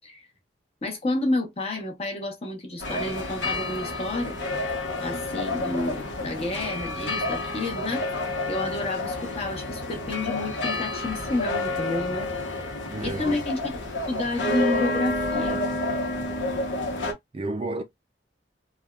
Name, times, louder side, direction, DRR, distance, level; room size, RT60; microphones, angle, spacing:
voice 1, 0.8-4.4 5.0-8.1 8.5-12.6 13.0-13.7 14.1-15.6, left 2 dB, 35° left, 0.9 m, -30 dB
sound 1, 2.8-17.1, left 2 dB, 80° left, 0.9 m, -29 dB
voice 2, 12.9-13.4 17.3-17.8, right 2 dB, 30° right, 0.4 m, -31 dB
3.3 x 2.2 x 2.3 m
head